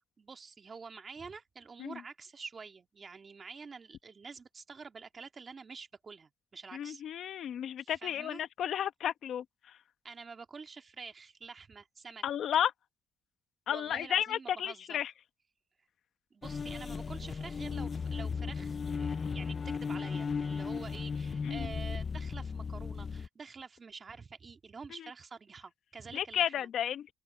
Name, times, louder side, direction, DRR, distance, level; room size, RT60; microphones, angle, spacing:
voice 1, 0.2-7.0 7.8-8.4 10.0-12.2 13.7-15.0 16.3-26.7, right 5 dB, 35° right, 2.1 m, -48 dB
voice 2, 6.7-9.8 12.2-12.7 13.7-15.1 21.4-21.7 24.9-25.0 26.1-27.1, left 10 dB, 70° left, 1.2 m, -33 dB
Exploring Dark Places - Atmosphere - by Dom Almond, 16.4-23.3, left 5 dB, 40° left, 0.5 m, -36 dB
open air
cardioid pair, 90°, 0 cm